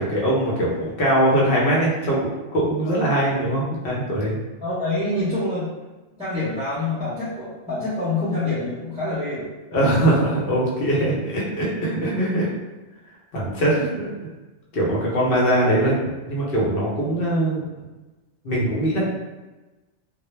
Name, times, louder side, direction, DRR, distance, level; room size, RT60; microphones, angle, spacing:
voice 1, 0.0-4.4 9.7-12.5 13.3-14.1 14.7-17.7 18.4-19.1, right 1 dB, 55° left, -4 dB, 0.8 m, -21 dB
voice 2, 4.6-5.7 6.2-9.5, left 2 dB, 5° right, -12 dB, 0.5 m, -26 dB
2.2 x 2.0 x 3.0 m, 1.1 s
omnidirectional pair, 1.2 m